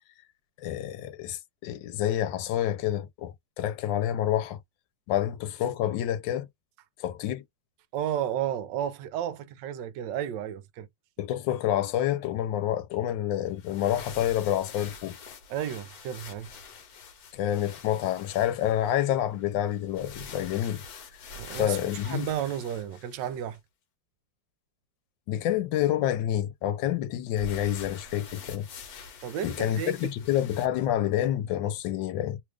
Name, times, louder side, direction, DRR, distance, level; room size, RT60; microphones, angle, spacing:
voice 1, 0.6-4.6 5.1-6.5 7.0-7.4 11.2-15.2 17.3-20.8 21.5-22.3 25.3-28.7 29.4-32.4, left 11 dB, 85° left, 1.3 m, -28 dB
voice 2, 7.9-10.9 15.5-16.5 21.3-21.8 22.0-23.6 29.2-29.9, right 10 dB, 75° right, 1.2 m, -32 dB
sound 1, 13.5-23.6 27.3-30.7, left 4 dB, 60° left, 1.3 m, -45 dB
3.2 x 2.3 x 3.3 m
omnidirectional pair, 2.0 m